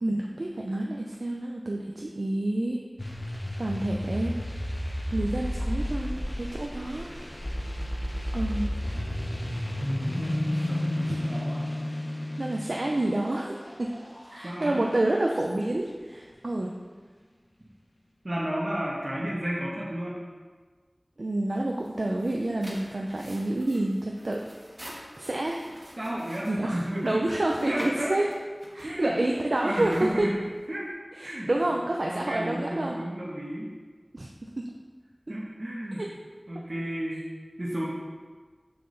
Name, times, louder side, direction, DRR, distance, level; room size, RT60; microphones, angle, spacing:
voice 1, 0.0-2.8 3.6-4.4 5.1-7.1 8.3-8.7 11.1-11.2 12.4-13.9 14.3-16.7 21.2-24.4 25.2-25.7 26.5-28.3 28.7-30.1 31.2-33.0 34.1-34.7 36.0-36.1, right 1 dB, 85° right, -1 dB, 0.5 m, -28 dB
sound 1, 3.0-15.4, left 1 dB, 45° left, 0.9 m, -32 dB
voice 2, 9.8-11.7 14.4-15.0 18.2-20.2 26.0-27.3 27.6-28.1 28.8-29.1 29.6-30.3 30.7-30.9 31.2-31.5 32.1-33.7 35.3-36.0 36.5-37.2 37.6-37.9, equal, 60° right, -6 dB, 1.2 m, -32 dB
sound 2, 21.7-30.9, equal, 30° right, 1.7 m, -47 dB
6.5 x 6.0 x 4.0 m, 1.4 s
wide cardioid pair, 40°, 0 cm